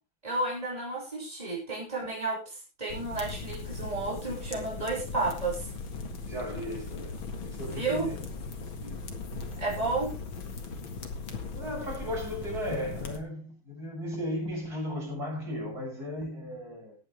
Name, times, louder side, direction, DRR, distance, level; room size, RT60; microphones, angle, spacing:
voice 1, 0.2-5.7 7.7-8.1 9.5-10.1, right 3 dB, 15° right, 5.8 m, -32 dB
sound 1, 2.9-13.2, left 4 dB, 70° left, 2.6 m, -38 dB
voice 2, 6.2-8.2 8.8-9.0 11.5-17.0, equal, 45° right, 7.6 m, -36 dB
18.0 x 9.7 x 3.4 m
omnidirectional pair, 2.3 m